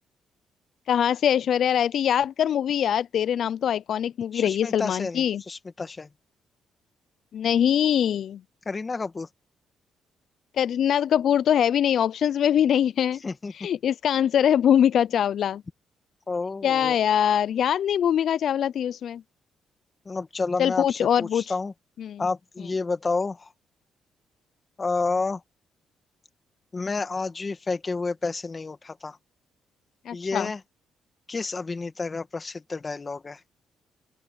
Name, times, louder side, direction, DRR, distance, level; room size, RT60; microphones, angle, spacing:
voice 1, 0.9-5.4 7.3-8.4 10.6-13.2 13.5-15.6 16.6-19.2 20.6-21.4 22.0-22.2 30.1-30.5, left 9 dB, 65° left, 0.3 m, -23 dB
voice 2, 4.3-6.1 8.6-9.3 13.2-13.5 16.3-16.9 20.0-21.7 22.2-23.5 24.8-25.4 26.7-29.2 30.1-30.6 31.3-33.4, left 3 dB, 30° left, 1.5 m, -30 dB
open air
cardioid pair, 90°, 0 cm